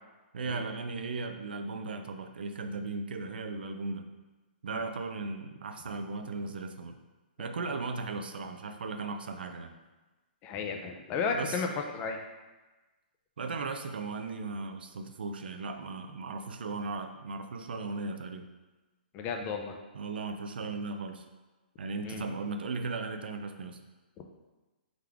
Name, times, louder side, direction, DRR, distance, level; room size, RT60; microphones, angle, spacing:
voice 1, 0.3-4.1 4.6-7.0 7.4-9.7 11.3-11.7 13.4-18.5 19.9-21.2 21.8-23.8, right 3 dB, 80° right, 6 dB, 0.4 m, -37 dB
voice 2, 10.4-12.2 19.1-19.8 22.0-22.2, left 5 dB, 30° left, 4 dB, 0.5 m, -33 dB
3.7 x 3.4 x 3.3 m, 1.2 s
hypercardioid pair, 140°, 5 cm